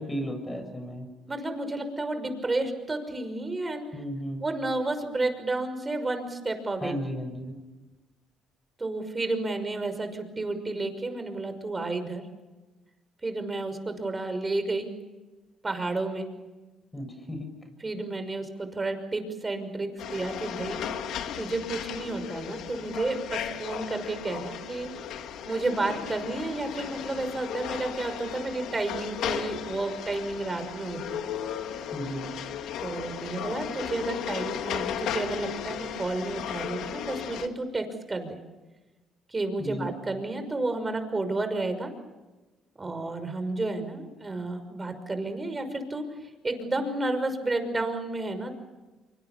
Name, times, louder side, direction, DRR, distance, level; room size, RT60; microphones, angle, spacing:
voice 1, 0.0-1.1 3.9-4.5 6.8-7.6 16.9-17.5 31.9-32.4 39.6-39.9, equal, 15° left, 5 dB, 7.5 m, -34 dB
voice 2, 1.3-3.9 4.4-6.9 8.8-12.2 13.2-14.9 15.6-16.3 17.8-24.9 25.4-31.2 32.8-38.3 39.3-41.9 42.8-48.5, right 2 dB, 25° right, 8 dB, 5.9 m, -31 dB
sound 1, 20.0-37.5, left 9 dB, 75° left, 2.0 m, -35 dB
26.5 x 24.5 x 7.1 m, 1.2 s
supercardioid pair, 75°, 0 cm